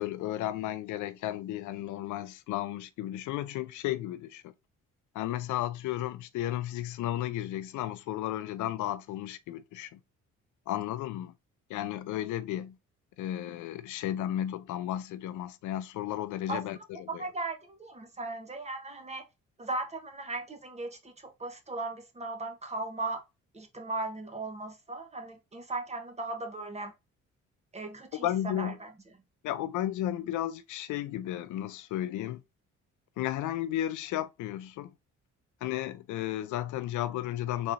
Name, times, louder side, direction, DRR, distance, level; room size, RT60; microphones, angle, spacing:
voice 1, 0.0-4.5 5.1-10.0 10.7-11.3 11.7-12.8 13.2-17.2 28.1-28.8 29.4-32.4 33.2-34.9 35.6-37.7, left 13 dB, 80° left, 0.5 m, -33 dB
voice 2, 16.9-19.3 19.6-23.2 23.5-26.9 27.7-28.9, right 2 dB, 20° right, 1.0 m, -37 dB
3.8 x 3.2 x 2.5 m
cardioid pair, 90°, 30 cm